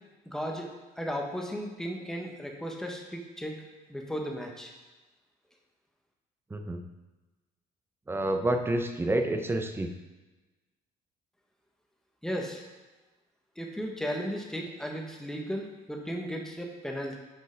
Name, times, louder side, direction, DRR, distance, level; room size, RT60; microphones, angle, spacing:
voice 1, 0.3-0.7 1.0-3.6 3.9-4.7 12.2-12.6 13.6-17.2, equal, 5° left, 1 dB, 1.2 m, -35 dB
voice 2, 6.5-6.8 8.1-9.9, right 1 dB, 15° right, 6 dB, 0.7 m, -28 dB
6.7 x 5.3 x 5.2 m, 1.2 s
cardioid pair, 110°, 17 cm